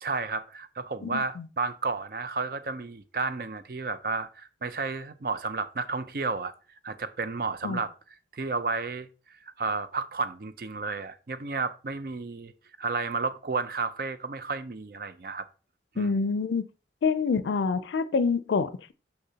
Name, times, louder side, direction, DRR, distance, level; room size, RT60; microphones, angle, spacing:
voice 1, 0.0-6.5 6.8-7.9 8.3-9.1 9.4-12.5 12.8-15.5 15.9-16.1, right 4 dB, 55° right, 0.5 m, -32 dB
voice 2, 1.0-1.5 7.6-7.8 16.0-16.6 17.0-18.9, left 5 dB, 90° left, 0.4 m, -27 dB
6.6 x 5.8 x 2.8 m
head